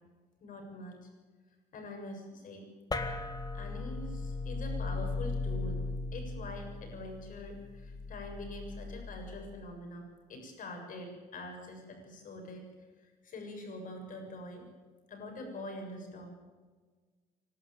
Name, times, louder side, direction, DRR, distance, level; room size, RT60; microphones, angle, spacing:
voice 1, 0.4-1.1 1.7-2.7 3.5-5.8 6.1-12.7 13.0-14.6 15.1-16.3, left 1 dB, 50° left, 3 dB, 7.2 m, -44 dB
sound 1, 2.9-9.6, left 3 dB, 25° left, 1.9 m, -37 dB
25.5 x 12.5 x 8.8 m, 1.4 s
cardioid pair, 110°, 17 cm